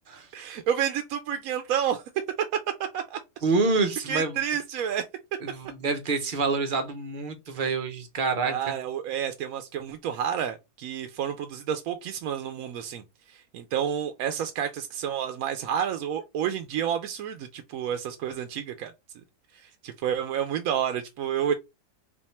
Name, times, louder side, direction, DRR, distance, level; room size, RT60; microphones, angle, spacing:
voice 1, 0.3-2.0 2.9-3.2 4.1-5.1 8.4-18.9 19.5-21.5, right 9 dB, 70° right, 0.9 m, -30 dB
voice 2, 3.4-4.3 5.4-8.7, right 4 dB, 55° right, 0.6 m, -27 dB
3.4 x 2.5 x 4.2 m
omnidirectional pair, 1.7 m